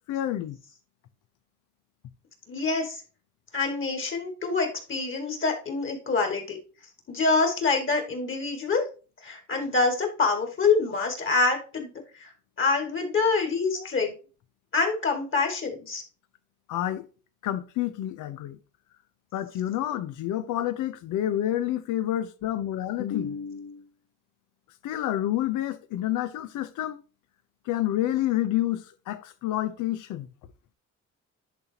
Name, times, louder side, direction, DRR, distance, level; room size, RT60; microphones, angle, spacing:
voice 1, 0.1-0.6 16.7-17.1 17.4-18.6 19.3-23.9 24.8-27.0 27.7-30.3, left 12 dB, 85° left, 0.7 m, -29 dB
voice 2, 2.5-3.0 3.5-6.6 7.1-8.8 9.2-11.9 12.2-12.3 12.6-14.1 14.7-16.0, left 4 dB, 40° left, 2.3 m, -26 dB
10.5 x 4.1 x 2.9 m
cardioid pair, 90°, 30 cm